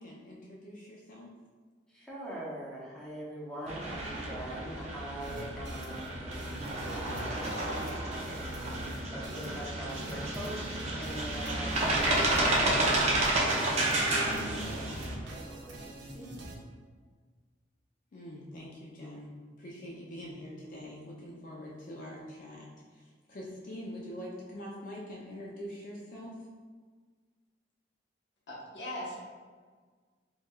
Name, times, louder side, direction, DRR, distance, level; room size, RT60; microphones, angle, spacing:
voice 1, 0.0-1.3 18.1-26.4, equal, 45° left, -3 dB, 0.4 m, -44 dB
voice 2, 1.9-7.6 8.1-16.4, right 1 dB, 5° left, -6 dB, 0.7 m, -43 dB
Passing Chairlift Tower, 3.7-15.1, right 1 dB, 35° right, 0.5 m, -31 dB
sound 1, 5.2-16.6, right 1 dB, 80° right, 0.6 m, -46 dB
voice 3, 28.5-29.2, left 1 dB, 80° left, -6 dB, 0.9 m, -39 dB
4.5 x 2.2 x 2.2 m, 1.5 s
head